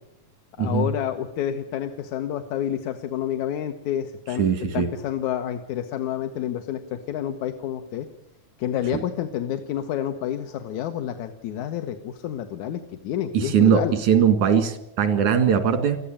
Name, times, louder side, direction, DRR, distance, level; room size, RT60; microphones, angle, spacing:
voice 1, 0.6-4.4 4.7-8.1 8.6-13.9, left 10 dB, 80° left, 6 dB, 2.5 m, -29 dB
voice 2, 4.4-4.9 8.9-9.0 13.3-16.0, right 7 dB, 90° right, 8 dB, 3.5 m, -20 dB
21.0 x 14.5 x 8.9 m, 0.85 s
omnidirectional pair, 3.3 m